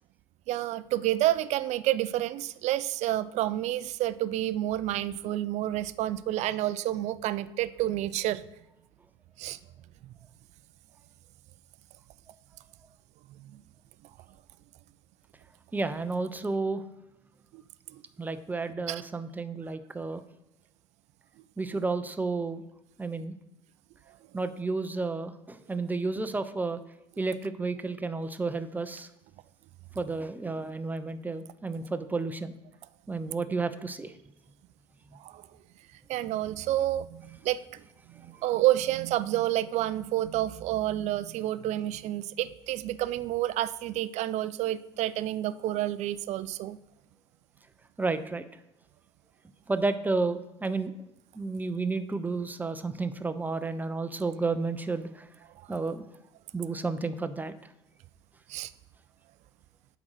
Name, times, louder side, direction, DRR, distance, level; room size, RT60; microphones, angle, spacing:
voice 1, 0.5-8.4 9.4-9.6 10.0-10.1 13.3-13.6 17.5-17.6 17.9-18.0 18.9-19.0 35.2-35.5 36.1-37.8 38.1-46.8 55.6-55.7 58.5-58.7, right 14 dB, 55° right, 17 dB, 0.4 m, -29 dB
voice 2, 15.7-16.8 18.2-20.2 21.6-22.6 23.0-23.3 24.3-26.8 27.2-29.1 29.9-32.5 33.1-34.1 48.0-48.4 49.7-50.9 51.3-55.3 55.7-56.1 56.5-57.5, right 3 dB, 10° right, 10 dB, 0.7 m, -31 dB
8.3 x 3.9 x 4.8 m, 0.91 s
hypercardioid pair, 65°, 14 cm